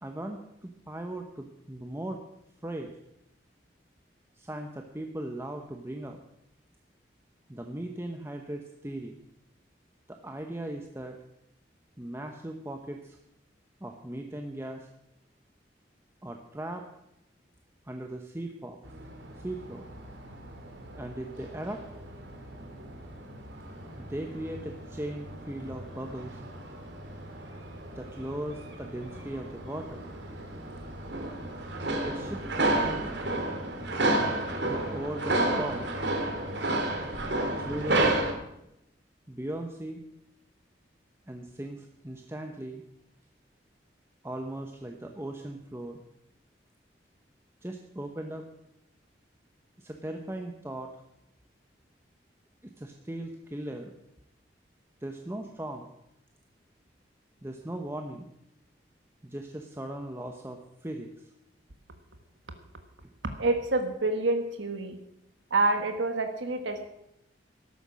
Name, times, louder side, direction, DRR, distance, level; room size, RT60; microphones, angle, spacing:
voice 1, 0.0-2.2 2.6-2.9 4.4-6.2 7.5-9.2 10.1-11.2 12.0-13.2 13.8-14.9 16.2-16.8 17.9-18.8 19.4-19.9 21.0-21.8 24.0-26.4 27.9-30.0 31.9-33.1 34.6-35.9 37.6-38.1 39.3-40.0 41.3-42.8 44.2-46.0 47.6-48.4 49.8-50.9 52.8-53.9 55.0-55.9 57.4-58.3 59.2-61.3, right 1 dB, 15° right, 3 dB, 0.9 m, -38 dB
sound 1, 18.8-38.3, right 2 dB, 70° right, 2.4 m, -32 dB
voice 2, 63.4-65.0 65.5-66.9, right 2 dB, 85° right, 6 dB, 1.4 m, -27 dB
14.0 x 11.5 x 6.3 m, 0.82 s
head